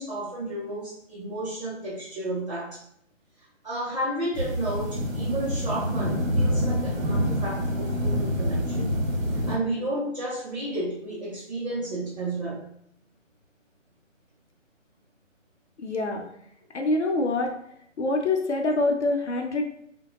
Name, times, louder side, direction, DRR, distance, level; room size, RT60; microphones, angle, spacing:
voice 1, 0.0-2.8 3.4-8.9 9.3-12.7, right 1 dB, 35° right, -8 dB, 0.6 m, -32 dB
sound 1, 4.3-9.6, equal, 85° right, 0.8 m, -26 dB
voice 2, 15.8-16.2 16.7-17.5 18.0-19.7, left 2 dB, 60° left, 2 dB, 0.6 m, -25 dB
3.5 x 2.1 x 2.9 m, 0.71 s
hypercardioid pair, 165°, 39 cm